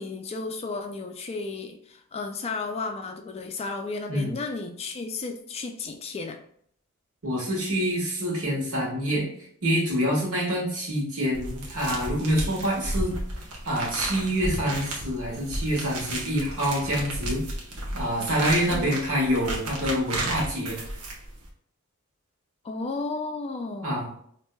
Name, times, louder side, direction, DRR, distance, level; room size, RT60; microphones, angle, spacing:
voice 1, 0.0-6.4 18.7-18.9 22.6-24.0, left 3 dB, 30° left, 5 dB, 0.3 m, -33 dB
voice 2, 7.2-9.3 9.6-13.1 13.6-17.4 17.9-20.8 23.8-24.1, equal, 70° right, -3 dB, 1.4 m, -26 dB
sound 1, 11.3-21.5, right 1 dB, 85° right, 0.8 m, -33 dB
4.4 x 2.6 x 2.2 m, 0.64 s
head